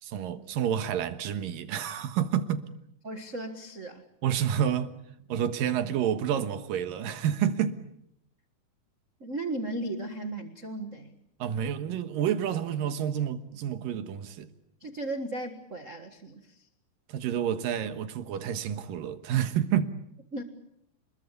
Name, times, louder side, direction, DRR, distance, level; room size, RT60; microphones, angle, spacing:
voice 1, 0.0-2.6 4.2-4.9 5.3-7.8 11.4-14.5 17.1-20.0, right 9 dB, 75° right, 3.0 m, -29 dB
voice 2, 3.0-4.0 9.2-11.1 14.8-16.7 20.3-20.4, right 2 dB, 45° right, 1.0 m, -36 dB
28.5 x 21.5 x 8.4 m
omnidirectional pair, 4.1 m